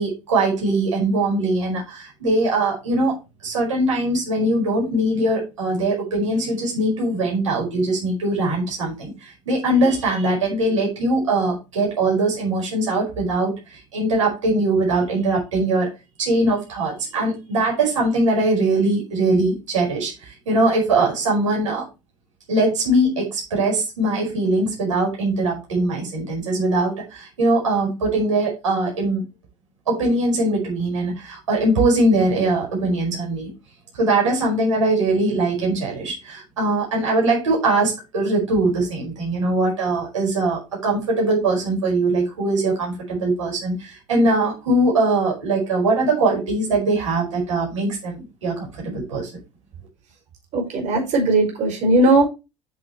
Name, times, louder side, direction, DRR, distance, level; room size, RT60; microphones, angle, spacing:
voice 1, 0.0-3.2 3.4-15.9 16.2-21.8 22.5-29.2 29.9-33.5 33.9-49.3, right 2 dB, 80° right, -2 dB, 5.0 m, -21 dB
voice 2, 50.5-52.2, right 2 dB, 50° right, 3 dB, 5.1 m, -18 dB
10.5 x 6.4 x 3.0 m, 0.26 s
figure-of-eight pair, 70°, 16 cm